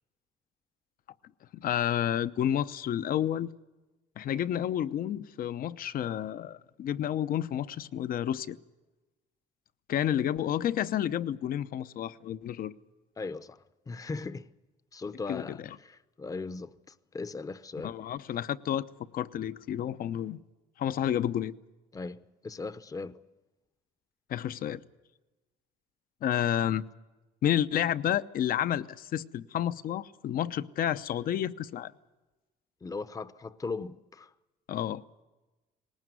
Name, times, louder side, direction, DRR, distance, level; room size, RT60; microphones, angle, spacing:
voice 1, 1.5-3.5 4.2-8.6 9.9-12.7 15.3-15.6 17.8-18.9 19.1-20.4 20.8-21.5 24.3-24.8 26.2-26.8 27.4-31.9 34.7-35.0, left 10 dB, 60° left, 0.8 m, -30 dB
voice 2, 13.2-14.5 14.9-16.7 17.1-18.0 21.9-23.2 32.8-34.3, left 4 dB, 20° left, 0.8 m, -38 dB
20.0 x 18.5 x 9.4 m
cardioid pair, 110°, 17 cm